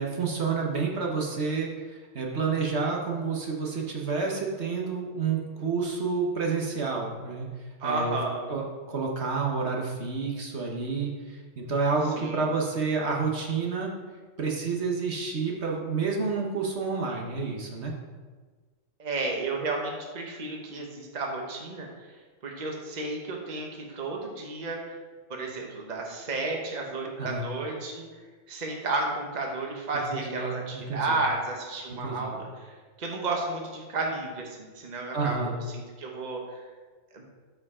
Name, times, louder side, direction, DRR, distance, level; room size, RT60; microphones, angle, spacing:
voice 1, 0.0-7.5 7.8-8.2 8.5-13.9 14.4-17.9 27.2-27.5 30.1-31.2 31.9-32.3 35.1-35.6, right 4 dB, 60° right, -1 dB, 1.4 m, -29 dB
voice 2, 7.8-8.6 12.1-12.5 19.0-21.9 22.4-24.9 25.3-28.0 28.5-32.7 33.0-36.6 37.1-37.2, right 3 dB, 35° right, 0 dB, 1.2 m, -32 dB
13.0 x 4.9 x 3.7 m, 1.4 s
omnidirectional pair, 1.3 m